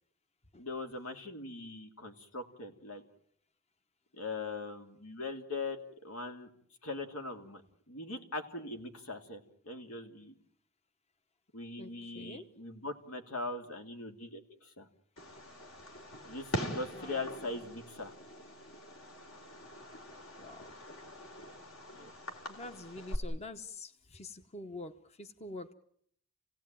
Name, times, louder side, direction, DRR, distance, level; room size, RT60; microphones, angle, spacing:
voice 1, 0.6-3.0 4.1-6.5 6.8-7.6 7.9-10.3 11.5-14.9 16.2-18.1 21.9-22.1, left 3 dB, 90° left, 2.8 m, -41 dB
voice 2, 11.8-12.5 16.9-17.3 20.4-20.7 22.5-25.7, left 2 dB, 30° left, 0.9 m, -46 dB
Fireworks, 15.2-23.2, equal, 65° left, 3.5 m, -43 dB
28.5 x 17.5 x 9.1 m
head